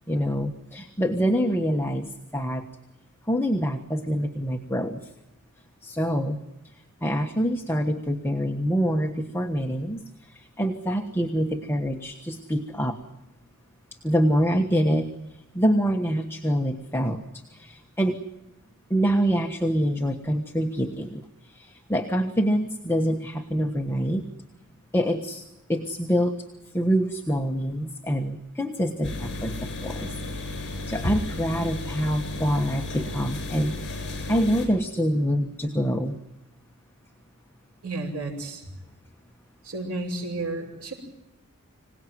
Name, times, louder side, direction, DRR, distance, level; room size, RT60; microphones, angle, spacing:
voice 1, 0.1-2.6 3.3-5.1 5.8-6.4 7.0-13.0 14.0-15.1 15.5-18.2 18.9-24.2 24.9-25.4 25.7-26.4 26.7-33.8 34.3-36.2, equal, 10° left, 4 dB, 1.3 m, -26 dB
sound 1, 29.0-34.7, left 2 dB, 55° left, 7.5 m, -33 dB
voice 2, 37.8-38.6 39.6-40.9, right 2 dB, 80° right, -6 dB, 6.3 m, -32 dB
26.5 x 18.5 x 9.3 m, 0.95 s
head